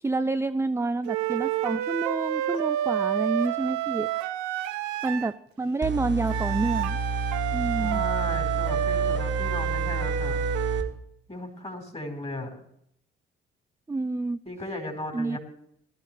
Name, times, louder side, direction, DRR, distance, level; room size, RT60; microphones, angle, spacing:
voice 1, 0.0-4.1 5.0-7.0 7.5-8.0 13.9-14.4 15.1-15.4, right 3 dB, 10° right, 13 dB, 0.4 m, -28 dB
sound 1, 1.1-5.4 6.3-10.9, right 11 dB, 70° right, 0.8 m, -29 dB
sound 2, 5.8-10.8, right 3 dB, 40° right, 1.8 m, -30 dB
voice 2, 7.7-10.5 11.3-12.6 14.4-15.4, left 1 dB, 20° left, 4 dB, 4.3 m, -36 dB
19.0 x 12.0 x 3.3 m, 0.71 s
hypercardioid pair, 45°, 29 cm